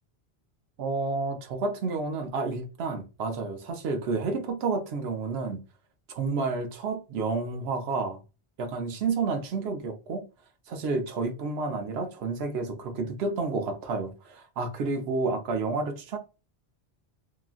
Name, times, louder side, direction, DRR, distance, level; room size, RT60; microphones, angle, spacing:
voice 1, 0.8-5.6 6.1-8.2 8.6-10.3 10.7-16.2, right 4 dB, 70° right, 0.8 m, -30 dB
2.8 x 2.4 x 2.3 m
omnidirectional pair, 1.1 m